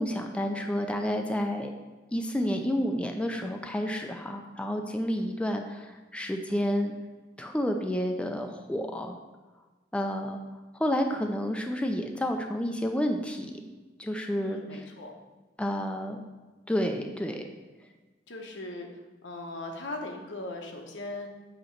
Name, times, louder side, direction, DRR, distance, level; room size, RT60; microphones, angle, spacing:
voice 1, 0.0-1.7 2.1-6.9 7.4-9.2 9.9-10.4 10.8-13.5 14.0-14.9 15.6-16.2 16.7-17.5, equal, 5° left, 4 dB, 0.4 m, -30 dB
voice 2, 14.4-15.1 18.3-18.9 19.2-21.3, left 2 dB, 80° left, 2 dB, 1.0 m, -39 dB
7.7 x 3.0 x 5.7 m, 1.2 s
head